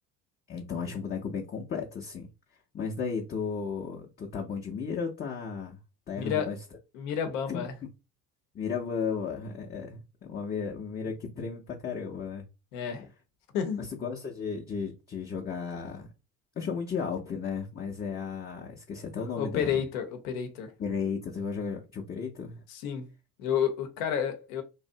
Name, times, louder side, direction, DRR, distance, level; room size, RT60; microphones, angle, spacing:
voice 1, 0.5-2.3 2.7-5.8 6.1-6.6 7.5-7.6 8.5-12.5 13.8-16.1 16.6-19.8 20.8-22.6, left 5 dB, 25° left, 0.5 m, -34 dB
voice 2, 6.2-6.5 6.9-7.7 12.7-13.1 13.5-13.8 19.3-20.7 22.7-23.1 23.4-24.6, left 8 dB, 75° left, 0.7 m, -30 dB
2.6 x 2.0 x 2.6 m
hypercardioid pair, 60°, 42 cm